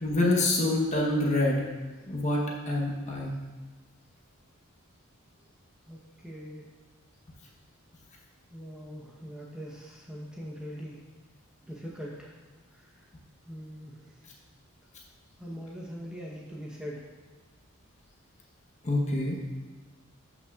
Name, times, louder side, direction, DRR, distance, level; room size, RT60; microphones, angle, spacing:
voice 1, 0.0-1.6 2.1-3.3 18.8-19.4, left 2 dB, 35° left, -2 dB, 1.0 m, -26 dB
voice 2, 5.9-6.7 8.5-11.0 11.7-12.3 13.5-14.0 15.4-17.1, equal, 5° right, -4 dB, 0.9 m, -41 dB
12.0 x 5.5 x 2.4 m, 1.4 s
head